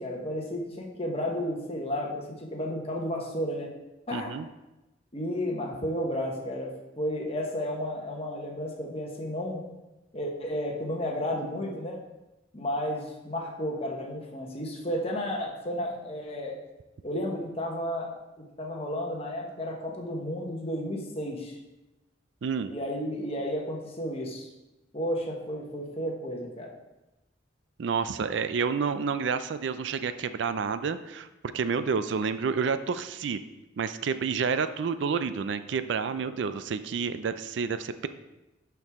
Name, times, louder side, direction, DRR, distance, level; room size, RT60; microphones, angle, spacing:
voice 1, 0.0-3.7 4.1-4.3 5.1-9.6 10.1-12.0 12.5-16.6 17.0-18.1 18.4-21.6 22.7-24.5 24.9-26.7, equal, 30° left, 0 dB, 1.2 m, -32 dB
voice 2, 4.1-4.5 22.4-22.7 27.8-31.3 31.5-33.4 33.8-38.1, right 5 dB, 65° right, 12 dB, 0.4 m, -29 dB
11.5 x 4.7 x 3.6 m, 1.0 s
head